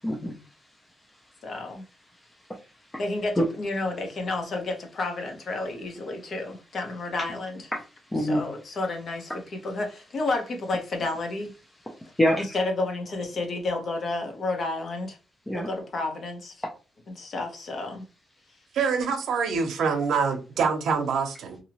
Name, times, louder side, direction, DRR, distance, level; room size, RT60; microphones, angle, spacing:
voice 1, 0.0-0.4 2.5-3.0 3.4-3.5 7.7-8.4 9.3-9.4 11.9-12.4 15.5-15.7 16.6-16.7, equal, 10° left, 0.4 m, -27 dB
voice 2, 1.4-1.8 3.0-7.7 8.2-9.3 9.6-11.5 12.4-15.2 15.5-16.6 17.1-18.1, left 2 dB, 45° left, 0.8 m, -31 dB
voice 3, 18.7-21.6, right 5 dB, 85° right, 0.6 m, -25 dB
2.7 x 2.7 x 2.9 m
wide cardioid pair, 165°, 0 cm